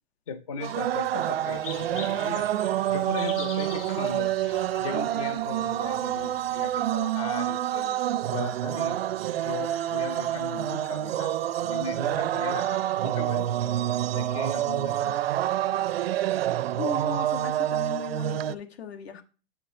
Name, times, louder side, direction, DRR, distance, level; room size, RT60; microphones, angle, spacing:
voice 1, 0.3-2.5 2.9-8.0 8.3-9.0 9.4-11.3 11.6-13.8 14.1-15.2, left 5 dB, 35° left, 11 dB, 0.4 m, -37 dB
sound 1, 0.6-18.5, right 12 dB, 70° right, 0.5 m, -27 dB
sound 2, 1.5-6.9, left 5 dB, 60° left, 1.2 m, -44 dB
voice 2, 16.8-19.2, left 7 dB, 80° left, 7 dB, 1.2 m, -37 dB
8.1 x 5.8 x 2.6 m, 0.34 s
hypercardioid pair, 180°, 31 cm